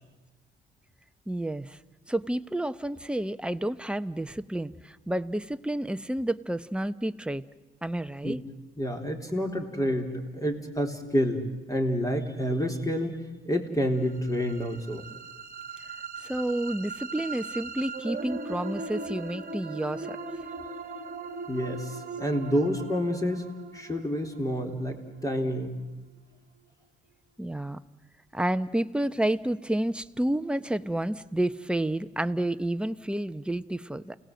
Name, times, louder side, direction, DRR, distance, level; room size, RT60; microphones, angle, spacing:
voice 1, 1.3-1.8 2.1-7.4 7.8-8.4 16.2-20.2 27.4-27.8 28.3-34.1, right 1 dB, 5° right, 11 dB, 0.8 m, -30 dB
voice 2, 8.8-13.2 13.5-15.0 21.5-23.4 23.7-25.8, equal, 15° left, 3 dB, 3.7 m, -28 dB
sound 1, 14.1-26.1, right 3 dB, 45° right, 1.6 m, -39 dB
29.0 x 18.0 x 7.8 m, 1.2 s
cardioid pair, 90°, 20 cm